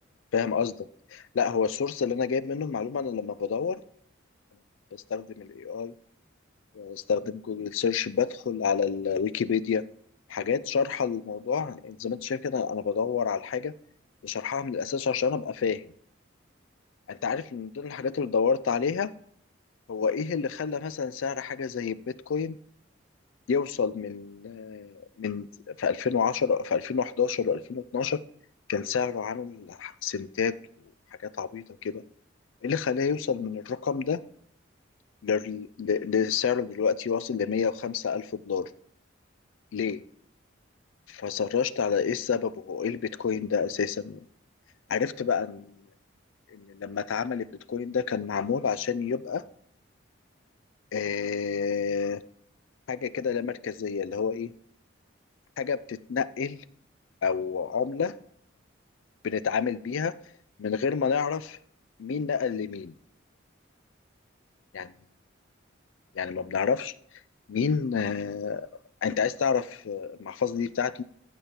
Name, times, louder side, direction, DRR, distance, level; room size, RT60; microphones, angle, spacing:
voice 1, 0.3-3.8 4.9-5.9 6.7-9.8 10.3-13.7 14.2-15.8 17.1-19.1 19.9-22.6 23.5-28.2 28.7-30.5 31.4-32.0 32.6-34.2 35.2-38.7 39.7-40.0 41.1-44.2 44.9-45.8 46.5-49.4 50.9-52.2 52.9-54.5 55.6-56.6 57.2-58.1 59.2-60.1 60.6-61.6 62.0-62.9 64.7-64.9 66.1-66.9 67.5-68.7 69.0-71.0, left 6 dB, 75° left, 17 dB, 0.4 m, -29 dB
14.5 x 5.3 x 4.4 m, 0.66 s
head